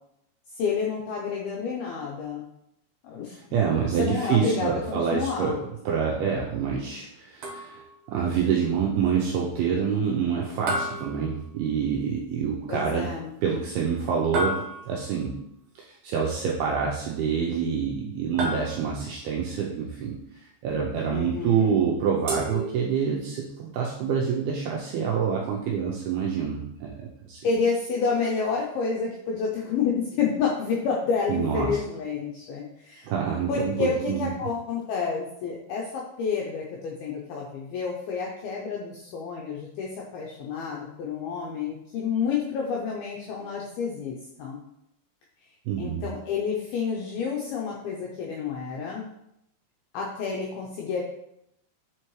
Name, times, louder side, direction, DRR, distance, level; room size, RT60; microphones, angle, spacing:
voice 1, 0.5-2.4 3.0-5.6 12.7-13.3 21.1-21.8 27.4-33.1 33.5-44.6 45.8-49.1 49.9-51.0, left 5 dB, 85° left, -2 dB, 2.2 m, -29 dB
voice 2, 3.5-5.6 5.9-7.8 8.1-13.1 13.4-14.6 14.9-15.4 15.9-20.2 20.6-27.4 31.3-31.8 33.1-34.3 45.7-46.0, right 6 dB, 90° right, -2 dB, 2.2 m, -26 dB
sound 1, 7.4-8.0 10.7-11.9 14.3-15.2 18.4-19.2 22.3-23.3, right 1 dB, 70° right, 2.0 m, -32 dB
7.4 x 4.5 x 3.1 m, 0.79 s
omnidirectional pair, 5.2 m